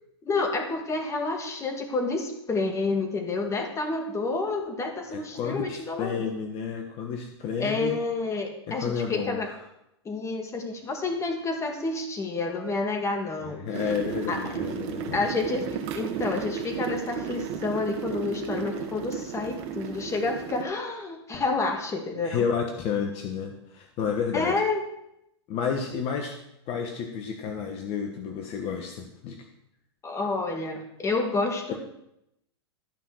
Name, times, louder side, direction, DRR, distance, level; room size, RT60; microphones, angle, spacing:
voice 1, 0.2-6.2 7.6-9.5 10.1-13.6 14.3-14.4 15.1-22.4 24.3-24.8 30.0-31.8, left 3 dB, 20° left, 3 dB, 2.2 m, -29 dB
voice 2, 5.1-8.0 8.7-9.4 13.4-15.3 22.2-24.5 25.5-26.4 26.7-29.4, left 6 dB, 45° left, 4 dB, 1.3 m, -31 dB
sound 1, 13.7-20.6, right 7 dB, 50° right, 1.4 m, -34 dB
12.5 x 5.7 x 6.4 m, 0.81 s
hypercardioid pair, 100°, 14 cm